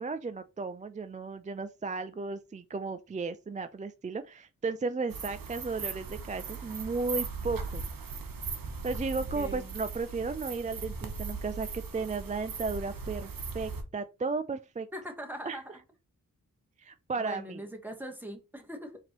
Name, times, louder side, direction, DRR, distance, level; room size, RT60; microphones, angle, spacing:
voice 1, 0.0-7.8 8.8-14.9 15.4-15.6 16.8-17.6, right 4 dB, 20° right, 0.3 m, -34 dB
sound 1, 5.1-13.8, right 4 dB, 70° right, 0.8 m, -38 dB
voice 2, 9.3-9.7 14.9-15.8 17.2-19.0, equal, 5° right, 1.2 m, -41 dB
4.3 x 2.9 x 3.0 m
cardioid pair, 45°, 36 cm